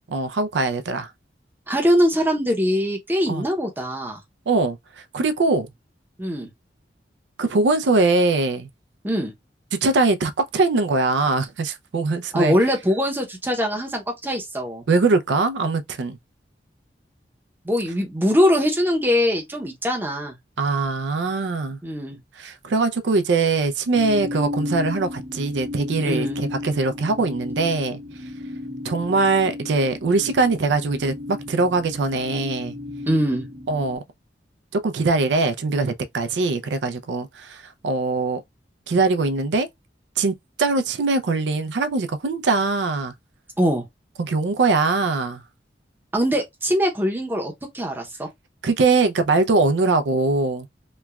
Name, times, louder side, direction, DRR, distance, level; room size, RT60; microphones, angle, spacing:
voice 1, 0.1-1.1 3.3-3.4 4.5-4.8 5.1-5.7 7.4-8.7 9.8-12.5 14.9-16.2 20.6-21.8 22.4-28.0 28.8-32.7 33.7-34.0 34.7-38.4 38.9-39.7 40.2-40.3 40.6-43.1 44.2-45.4 48.6-50.7, right 3 dB, 80° right, 0.4 m, -22 dB
voice 2, 1.7-4.2 6.2-6.5 9.0-9.3 12.3-14.8 17.6-20.4 21.8-22.2 26.0-26.4 33.0-33.5 43.6-43.9 46.1-48.3, equal, 10° right, 0.6 m, -22 dB
sound 1, 23.9-34.0, left 2 dB, 60° right, 0.8 m, -34 dB
3.0 x 2.2 x 2.3 m
head